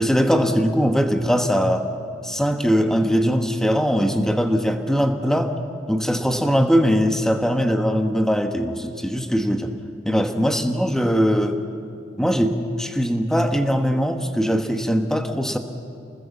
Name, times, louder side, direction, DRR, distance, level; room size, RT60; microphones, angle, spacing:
voice 1, 0.0-1.9 2.2-5.5 5.9-9.7 10.0-11.6 12.2-15.6, equal, 5° left, 6 dB, 1.3 m, -21 dB
28.0 x 20.0 x 7.3 m, 2.5 s
head